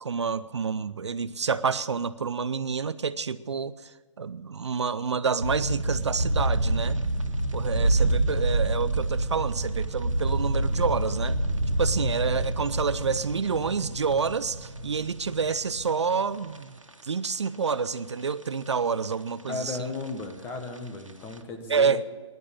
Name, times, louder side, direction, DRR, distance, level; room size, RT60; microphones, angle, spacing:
voice 1, 0.0-3.9 4.2-7.0 7.5-11.4 11.8-16.8 17.0-19.8 21.7-22.1, right 5 dB, 65° right, 15 dB, 0.7 m, -28 dB
sound 1, 5.4-16.9 17.2-17.3 17.8-18.7 19.0-19.1 19.5-20.8 21.1-21.4, right 1 dB, 90° right, 1.7 m, -27 dB
voice 2, 19.5-22.1, left 3 dB, 15° left, 5 dB, 1.5 m, -35 dB
16.5 x 11.0 x 7.3 m, 1.5 s
figure-of-eight pair, 140°, 16 cm